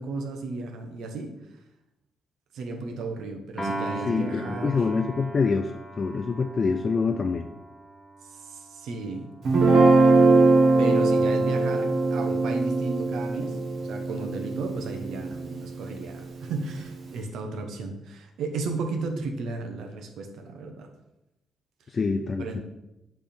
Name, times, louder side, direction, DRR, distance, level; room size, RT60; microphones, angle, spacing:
voice 1, 0.0-1.3 2.5-4.8 8.3-9.3 10.8-20.9 22.4-22.6, right 3 dB, 75° right, 5 dB, 1.0 m, -34 dB
Piano, 3.6-10.0, right 1 dB, 5° left, 1.3 m, -38 dB
voice 2, 4.0-5.7 6.0-7.5 21.9-22.6, left 4 dB, 40° left, 6 dB, 0.4 m, -26 dB
Guitar, 9.4-15.8, right 3 dB, 55° right, 1.5 m, -21 dB
7.9 x 3.5 x 4.4 m, 0.91 s
cardioid pair, 90°, 0 cm